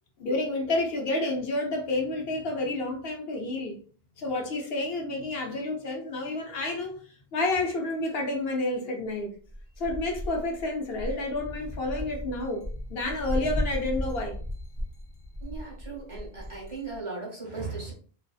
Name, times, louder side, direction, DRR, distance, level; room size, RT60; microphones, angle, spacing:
voice 1, 0.2-3.7 4.2-7.0 7.3-9.3 9.8-14.4, left 2 dB, 75° left, 0.9 m, -30 dB
sound 1, 9.5-17.0, left 1 dB, 35° left, 0.5 m, -35 dB
voice 2, 15.4-17.9, right 3 dB, 30° right, 1.0 m, -37 dB
2.5 x 2.4 x 2.3 m
omnidirectional pair, 1.1 m